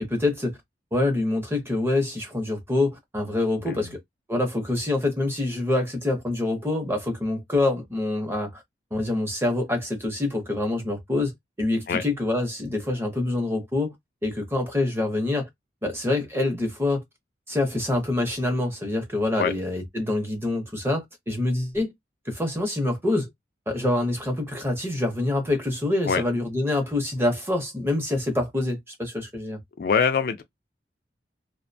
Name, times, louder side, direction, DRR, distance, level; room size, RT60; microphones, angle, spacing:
voice 1, 0.1-0.6 0.9-4.0 4.3-8.6 8.9-11.3 11.6-13.9 14.2-15.5 15.8-17.0 17.5-21.9 22.3-23.3 23.7-29.6, left 2 dB, 15° right, 0.6 m, -26 dB
voice 2, 29.8-30.4, left 6 dB, 55° left, 0.3 m, -23 dB
2.4 x 2.1 x 2.6 m
head